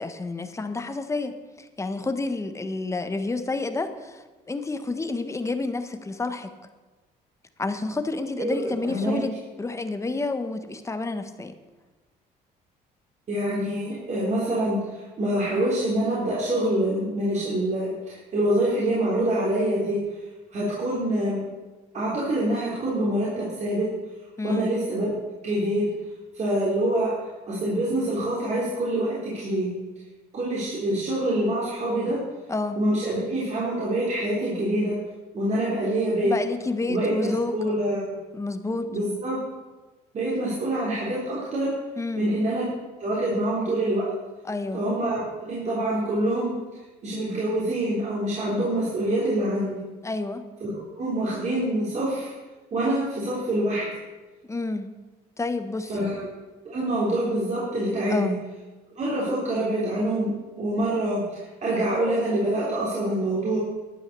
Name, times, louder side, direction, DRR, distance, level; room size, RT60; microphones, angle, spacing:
voice 1, 0.0-6.5 7.6-11.5 24.4-24.7 32.5-32.8 36.2-37.7 38.3-38.9 42.0-42.3 44.4-44.8 50.0-50.5 54.5-54.9 55.4-56.1 58.1-58.4, left 3 dB, 15° left, 9 dB, 1.2 m, -29 dB
voice 2, 8.4-9.2 13.3-20.0 20.5-21.5 21.9-23.9 24.4-25.1 25.4-25.9 26.3-27.1 27.5-29.7 30.3-32.2 32.8-34.9 35.3-36.3 36.9-38.1 38.9-39.4 40.1-41.7 42.2-42.6 43.0-44.1 44.7-46.5 47.0-49.8 50.6-52.3 52.7-53.9 55.9-56.2 56.6-58.3 59.0-60.3 60.6-63.6, right 1 dB, 45° right, -6 dB, 3.9 m, -25 dB
12.0 x 9.2 x 6.8 m, 1.2 s
cardioid pair, 110°, 17 cm